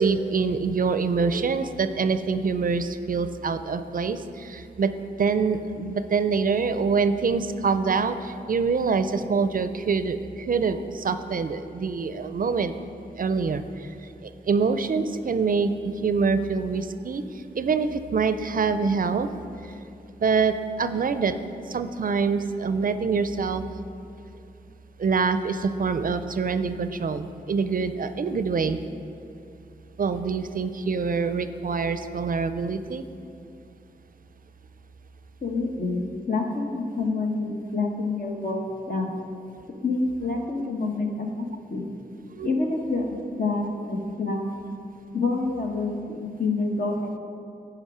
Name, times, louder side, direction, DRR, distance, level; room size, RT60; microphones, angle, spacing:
voice 1, 0.0-4.9 5.2-12.7 13.2-13.9 14.2-17.2 17.5-19.3 20.2-21.4 21.7-23.6 25.0-28.8 30.0-33.0 42.3-42.5, right 5 dB, 50° right, 10 dB, 0.5 m, -25 dB
voice 2, 35.4-39.2 39.7-41.9 42.4-44.5 45.1-47.2, left 3 dB, 55° left, 1 dB, 1.2 m, -27 dB
10.5 x 5.0 x 4.9 m, 2.6 s
cardioid pair, 40°, 18 cm